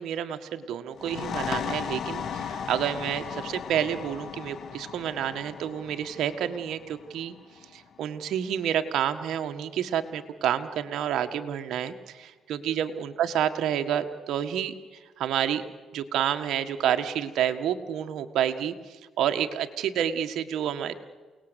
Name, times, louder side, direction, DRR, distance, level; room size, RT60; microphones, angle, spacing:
voice 1, 0.0-7.3 7.7-14.7 15.2-15.6 15.9-21.0, right 9 dB, 75° right, 7 dB, 1.7 m, -29 dB
sound 1, 0.9-8.3, left 7 dB, 65° left, 1.9 m, -36 dB
28.5 x 19.0 x 8.2 m, 1.4 s
cardioid pair, 90°, 0 cm